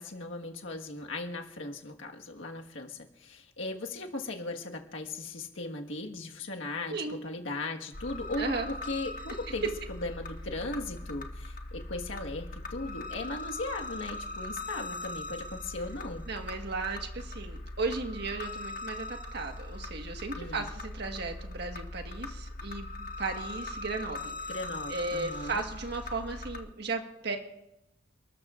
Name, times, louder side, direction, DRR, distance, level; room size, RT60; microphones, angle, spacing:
voice 1, 0.0-16.2 20.3-20.7 24.5-25.6, left 2 dB, 75° left, 2 dB, 1.6 m, -38 dB
sound 1, 7.9-26.6, left 2 dB, 45° left, 1.2 m, -40 dB
voice 2, 8.4-8.7 16.3-22.9 23.2-24.5 24.9-27.4, right 3 dB, 55° right, 4 dB, 1.5 m, -35 dB
29.5 x 13.0 x 2.5 m, 0.88 s
head